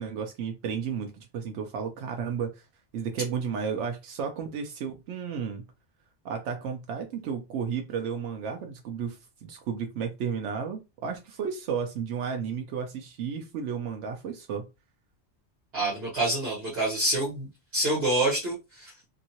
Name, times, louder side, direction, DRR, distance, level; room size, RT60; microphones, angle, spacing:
voice 1, 0.0-2.6 2.9-5.6 6.2-14.6, right 6 dB, 85° right, 0.9 m, -33 dB
voice 2, 15.7-17.5 17.7-18.9, right 2 dB, 60° right, 1.4 m, -27 dB
2.8 x 2.6 x 2.8 m
omnidirectional pair, 1.2 m